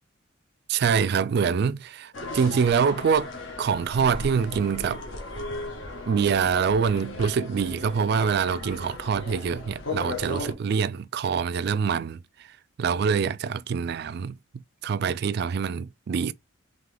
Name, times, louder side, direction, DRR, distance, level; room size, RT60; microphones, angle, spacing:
voice 1, 0.7-3.3 3.6-5.0 6.1-12.2 12.8-14.4 14.8-16.3, right 6 dB, 55° right, 0.3 m, -25 dB
sound 1, 2.1-10.5, left 2 dB, 70° left, 1.2 m, -36 dB
3.8 x 3.3 x 3.3 m
head